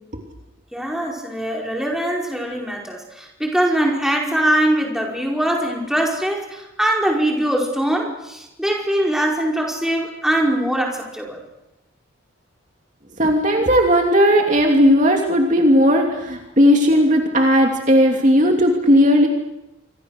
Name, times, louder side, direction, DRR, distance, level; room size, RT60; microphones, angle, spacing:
voice 1, 0.7-11.4, right 1 dB, ahead, -1 dB, 4.9 m, -22 dB
voice 2, 13.2-19.3, equal, 35° right, 2 dB, 2.8 m, -15 dB
27.5 x 25.0 x 6.6 m, 0.92 s
head